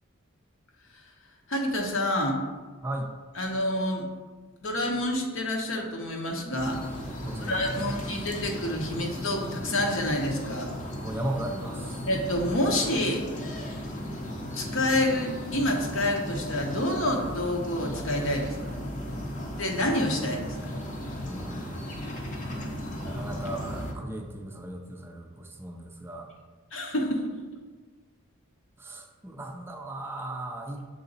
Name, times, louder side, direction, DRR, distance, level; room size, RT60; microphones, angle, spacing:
voice 1, 1.5-2.4 3.3-4.0 4.6-6.8 7.4-10.7 12.1-13.2 14.5-18.6 19.6-20.6 26.7-27.3, left 1 dB, 70° left, 1 dB, 1.0 m, -28 dB
sound 1, 6.6-23.9, equal, 35° left, 0.7 m, -36 dB
voice 2, 7.2-8.0 11.0-12.0 21.2-21.9 23.0-26.3 28.8-30.9, right 1 dB, 10° right, 1 dB, 0.4 m, -37 dB
6.5 x 4.0 x 4.0 m, 1.4 s
head